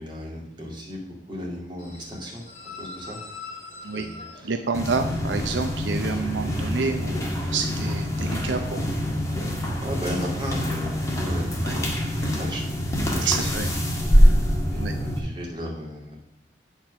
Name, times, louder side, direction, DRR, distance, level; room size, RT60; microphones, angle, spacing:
voice 1, 0.0-2.4 2.8-3.2 3.9-4.5 9.8-13.5 14.7-16.2, equal, 25° right, -3 dB, 2.4 m, -35 dB
sound 1, 1.8-11.4, left 3 dB, 40° left, 2.6 m, -46 dB
voice 2, 4.4-8.9 11.6-11.7 13.2-13.7 14.8-14.9, right 4 dB, 80° right, 6 dB, 0.6 m, -28 dB
sound 2, 4.7-15.2, equal, 20° left, 1.6 m, -24 dB
8.9 x 4.5 x 6.2 m, 0.85 s
head